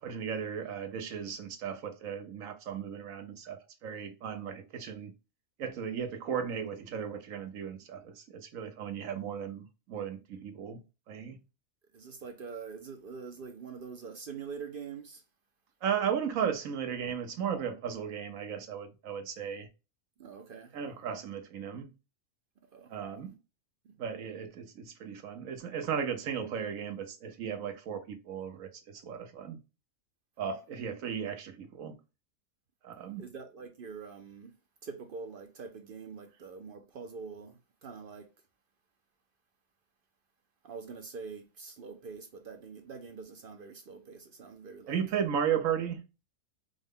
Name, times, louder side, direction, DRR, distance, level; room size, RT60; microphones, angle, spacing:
voice 1, 0.0-5.1 5.6-11.4 15.8-19.7 20.7-21.9 22.9-23.3 24.0-29.6 30.4-31.9 32.8-33.3 44.9-46.1, right 8 dB, 85° right, 1.2 m, -35 dB
voice 2, 11.9-15.2 20.2-20.7 22.7-22.9 23.9-24.0 33.2-34.5 34.8-38.3 40.6-45.0, right 5 dB, 55° right, 0.6 m, -44 dB
4.8 x 2.1 x 3.5 m
omnidirectional pair, 1.4 m